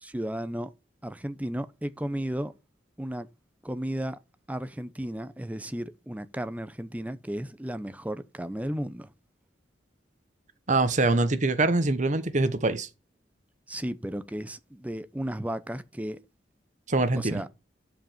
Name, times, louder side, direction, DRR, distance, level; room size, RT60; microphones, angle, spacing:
voice 1, 0.0-0.7 1.0-2.5 3.0-3.3 3.6-4.2 4.5-9.1 13.7-16.2 17.2-17.5, equal, 10° right, 0.7 m, -34 dB
voice 2, 10.7-12.9 16.9-17.4, right 2 dB, 45° right, 1.0 m, -24 dB
11.0 x 5.1 x 7.2 m
head